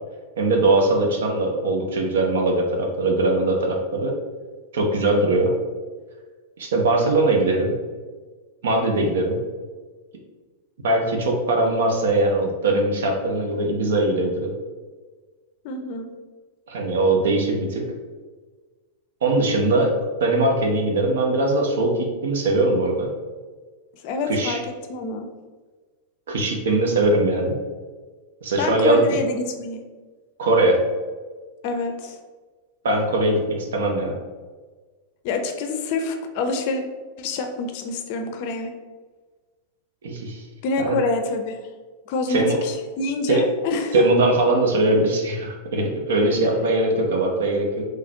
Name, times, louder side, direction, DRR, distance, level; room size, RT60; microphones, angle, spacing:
voice 1, 0.4-4.1 4.7-5.5 6.6-7.7 8.6-9.4 10.8-14.5 16.7-17.8 19.2-19.9 20.2-23.1 24.3-24.6 26.3-27.6 28.4-29.2 30.4-30.8 32.8-34.1 40.0-40.4 40.8-41.0 42.3-42.6 43.3-43.4 43.9-47.8, right 2 dB, 60° right, 1 dB, 0.7 m, -21 dB
voice 2, 15.6-16.1 23.9-24.6 24.9-25.3 28.6-29.8 31.6-32.2 35.2-36.8 37.2-38.7 40.6-41.7 42.1-43.9, left 3 dB, 45° left, 5 dB, 0.5 m, -26 dB
3.9 x 3.2 x 2.8 m, 1.4 s
figure-of-eight pair, 90°, 0 cm